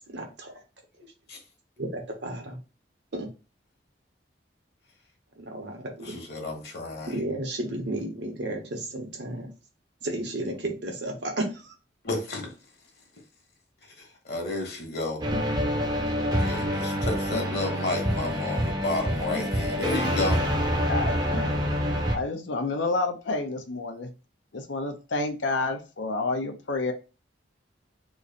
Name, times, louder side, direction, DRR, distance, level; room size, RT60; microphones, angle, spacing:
voice 1, 0.1-0.5 1.8-2.6 3.1-3.3 5.4-6.1 7.1-9.5 10.0-11.7, right 1 dB, 70° right, 1.0 m, -33 dB
voice 2, 6.0-7.2 12.0-12.5 14.0-15.2 16.4-20.5, left 2 dB, 55° left, 1.1 m, -31 dB
sound 1, 15.2-22.2, equal, 20° right, 0.6 m, -26 dB
voice 3, 20.9-21.4 22.1-24.1 24.5-26.9, left 3 dB, 85° left, 0.7 m, -29 dB
3.0 x 2.5 x 3.9 m
head